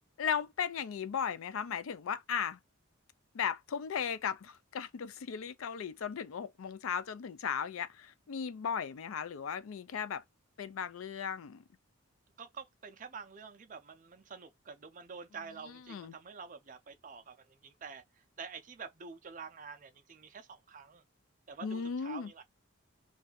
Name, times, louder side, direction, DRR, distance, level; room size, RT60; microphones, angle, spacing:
voice 1, 0.2-2.6 3.3-10.2 10.6-11.6 15.7-16.2 21.6-22.3, left 7 dB, 75° left, 0.4 m, -36 dB
voice 2, 12.4-18.0 18.4-21.0 21.5-22.4, right 5 dB, 35° right, 0.4 m, -48 dB
2.6 x 2.3 x 3.9 m
head